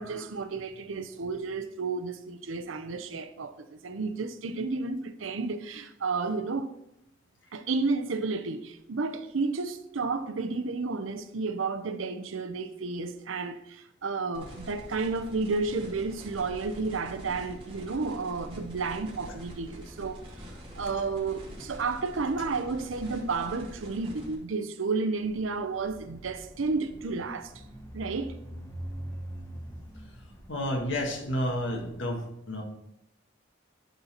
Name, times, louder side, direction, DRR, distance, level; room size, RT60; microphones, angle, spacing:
voice 1, 0.0-6.7 7.5-20.2 20.7-27.5 27.9-28.4, right 4 dB, 90° right, 0.7 m, -32 dB
sound 1, 14.3-24.3, equal, 25° right, 2.0 m, -45 dB
sound 2, 25.2-32.1, right 1 dB, 15° left, 1.1 m, -44 dB
voice 2, 30.5-32.6, equal, 70° left, 1.8 m, -30 dB
11.0 x 4.0 x 4.3 m
head